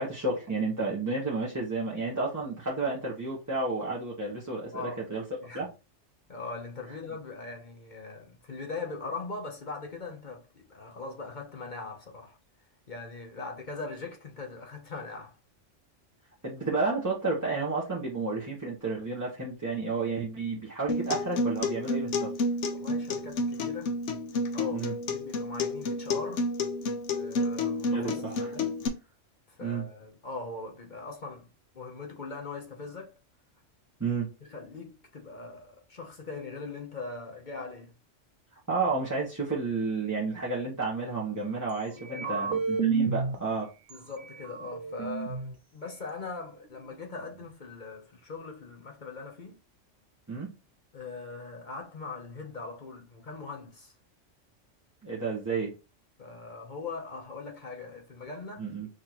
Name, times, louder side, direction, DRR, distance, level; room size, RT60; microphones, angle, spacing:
voice 1, 0.0-5.2 5.5-5.7 16.4-22.3 24.7-24.9 27.9-28.5 29.6-29.8 34.0-34.3 38.7-43.7 50.3-50.5 55.0-55.7 58.6-58.9, right 3 dB, 15° right, 0.9 m, -31 dB
voice 2, 4.7-5.0 5.4-5.7 6.3-12.4 12.9-15.4 22.7-24.0 24.5-26.5 27.1-28.2 28.5-28.7 29.5-31.5 31.7-33.2 34.4-37.9 41.9-42.6 43.9-49.6 50.9-53.9 56.2-58.7, left 3 dB, 45° left, 1.0 m, -41 dB
Acoustic guitar, 20.9-28.9, left 2 dB, 75° left, 1.0 m, -30 dB
sound 1, 42.0-43.4 43.9-44.0 44.3-45.5, right 5 dB, 80° right, 1.1 m, -30 dB
6.2 x 2.7 x 3.0 m
omnidirectional pair, 1.2 m